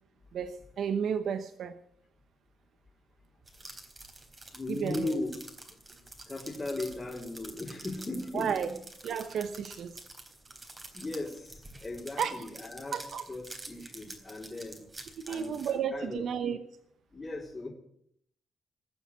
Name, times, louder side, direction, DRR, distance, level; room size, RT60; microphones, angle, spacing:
voice 1, 0.3-1.8 4.7-5.2 8.3-8.7 9.0-10.0 12.2-12.4 12.9-13.2 15.3-16.6, right 7 dB, 70° right, 10 dB, 1.0 m, -32 dB
sound 1, 3.5-15.8, right 2 dB, 30° right, 3.8 m, -48 dB
voice 2, 4.5-5.3 6.3-8.8 10.9-13.0 13.3-14.8 15.3-16.3 17.1-17.7, left 2 dB, 30° left, -4 dB, 4.2 m, -37 dB
20.5 x 7.2 x 8.5 m, 0.68 s
supercardioid pair, 55°, 0 cm